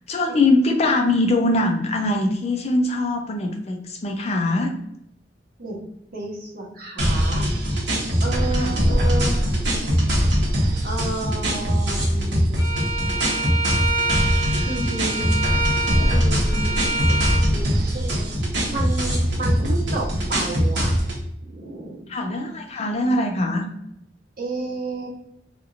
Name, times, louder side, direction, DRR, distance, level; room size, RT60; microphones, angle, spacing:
voice 1, 0.1-4.7 8.5-8.7 22.1-23.6, left 2 dB, 35° left, 3 dB, 0.4 m, -22 dB
voice 2, 6.1-7.8 8.2-9.4 10.8-12.7 14.6-15.3 16.0-17.1 17.5-20.9 21.4-22.1 24.4-25.1, right 2 dB, 55° right, -3 dB, 1.0 m, -32 dB
sound 1, 7.0-21.2, equal, 80° right, 0.9 m, -22 dB
Bowed string instrument, 12.6-17.4, right 2 dB, 20° right, 0.8 m, -27 dB
2.9 x 2.4 x 2.5 m, 0.77 s
head